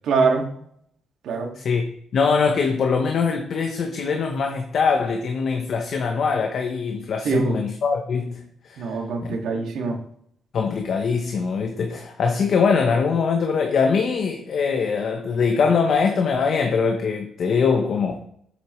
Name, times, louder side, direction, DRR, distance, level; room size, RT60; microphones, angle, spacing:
voice 1, 0.0-0.5 1.2-1.5 7.2-7.6 8.8-10.0, right 4 dB, 75° right, 2.0 m, -23 dB
voice 2, 2.1-9.4 10.5-18.2, left 5 dB, 50° left, 0.9 m, -22 dB
8.3 x 7.7 x 3.1 m
cardioid pair, 160°, 0 cm